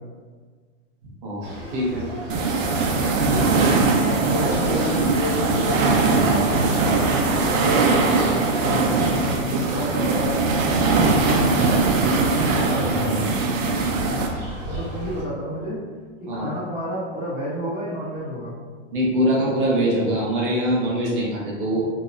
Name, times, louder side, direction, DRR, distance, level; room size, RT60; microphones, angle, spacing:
voice 1, 1.2-2.1 3.3-3.4 11.1-11.3 16.3-16.5 18.9-21.8, equal, 45° right, -5 dB, 0.6 m, -23 dB
sound 1, 1.4-15.2, equal, 65° right, 1.1 m, -34 dB
sound 2, 2.3-14.3, right 3 dB, 90° right, 0.6 m, -21 dB
voice 2, 3.2-3.7 4.0-10.5 11.1-13.5 14.6-15.8 16.3-18.6, equal, ahead, -22 dB, 0.4 m, -30 dB
2.7 x 2.1 x 2.3 m, 1.5 s
supercardioid pair, 175°, 38 cm